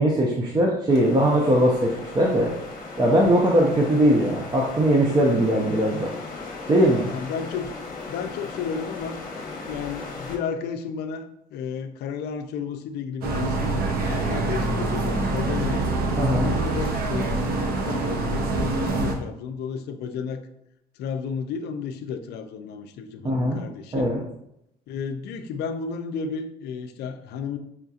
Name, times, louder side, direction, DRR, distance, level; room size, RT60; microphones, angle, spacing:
voice 1, 0.0-2.5 3.0-6.1 6.7-7.1 16.2-16.5 23.2-23.6 23.9-24.2, right 1 dB, 25° right, -2 dB, 0.6 m, -20 dB
sound 1, 0.9-10.4, left 3 dB, 55° left, 1.0 m, -37 dB
voice 2, 7.1-7.7 8.1-9.2 9.7-15.8 16.4-20.4 21.0-24.1 24.9-27.6, left 6 dB, 75° left, 8 dB, 0.5 m, -32 dB
sound 2, 13.2-19.1, right 2 dB, 65° right, 0.7 m, -25 dB
5.6 x 2.7 x 2.4 m, 0.78 s
cardioid pair, 110°, 17 cm